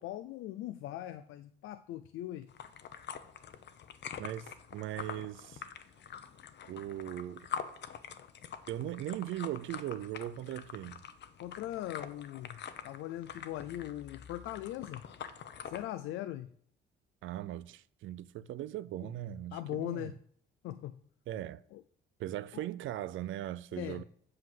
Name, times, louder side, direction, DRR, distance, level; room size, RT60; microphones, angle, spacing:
voice 1, 0.0-2.5 11.4-12.6 12.8-15.0 15.7-16.5 19.0-19.1 19.5-20.1 20.6-21.0 21.7-21.8 22.5-22.6 23.7-24.0, left 13 dB, 90° left, 0.5 m, -40 dB
sound 1, 2.5-15.9, left 8 dB, 60° left, 0.9 m, -45 dB
voice 2, 4.2-5.6 6.6-7.5 8.7-11.0 17.2-20.1 21.3-21.6 22.2-24.0, right 13 dB, 80° right, 0.5 m, -39 dB
7.7 x 5.8 x 7.7 m
cardioid pair, 90°, 20 cm